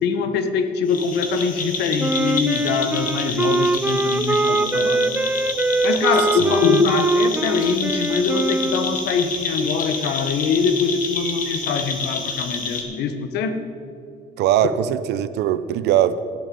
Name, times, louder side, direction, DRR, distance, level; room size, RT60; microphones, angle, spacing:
voice 1, 0.0-5.2 5.8-13.6, left 5 dB, 80° left, 9 dB, 1.1 m, -23 dB
sound 1, 0.9-12.8, left 4 dB, 50° left, 1.9 m, -29 dB
Wind instrument woodwind instrument, 2.0-9.1, right 2 dB, 10° right, 0.3 m, -22 dB
voice 2, 14.4-16.2, right 11 dB, 80° right, 14 dB, 0.6 m, -20 dB
14.0 x 11.0 x 5.4 m, 2.5 s
cardioid pair, 110°, 17 cm